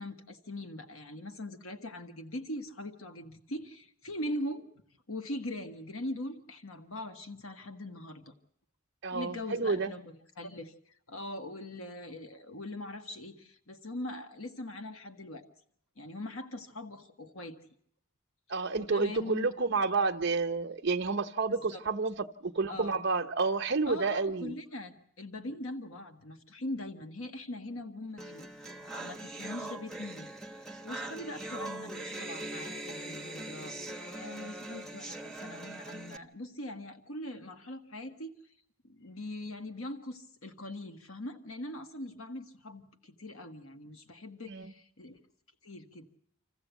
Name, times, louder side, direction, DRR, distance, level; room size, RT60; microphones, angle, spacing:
voice 1, 0.0-4.7 5.1-8.3 9.1-15.4 16.0-17.6 18.8-19.5 21.7-21.8 22.7-22.9 23.9-28.5 29.0-30.3 30.6-38.5 38.8-45.2 45.6-46.1, left 1 dB, 85° left, 1.5 m, -41 dB
voice 2, 9.0-9.9 18.5-24.6 44.5-44.7, right 4 dB, 55° right, 0.8 m, -30 dB
sound 1, 28.2-36.2, right 1 dB, 5° left, 1.0 m, -41 dB
26.5 x 15.0 x 8.1 m
head